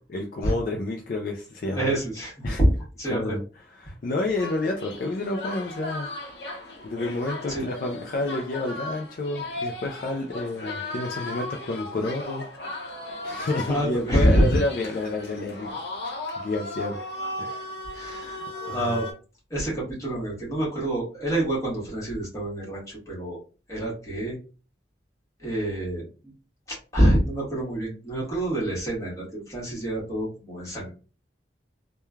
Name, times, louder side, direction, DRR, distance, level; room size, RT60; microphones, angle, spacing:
voice 1, 0.1-1.9 2.4-2.6 3.1-3.4 3.8-6.1 6.8-12.5 13.2-15.8 16.0-17.0 17.4-17.6 18.7-18.9, left 2 dB, 50° left, 2 dB, 0.3 m, -29 dB
voice 2, 1.7-2.7 3.0-3.4 7.5-7.6 13.6-14.4 17.9-18.4 18.7-19.0 19.5-23.4 23.7-24.4 25.4-26.3 26.7-30.9, right 1 dB, 20° left, -5 dB, 1.3 m, -26 dB
sound 1, 4.3-19.1, left 2 dB, 65° left, 0.7 m, -36 dB
3.1 x 2.2 x 2.3 m, 0.35 s
head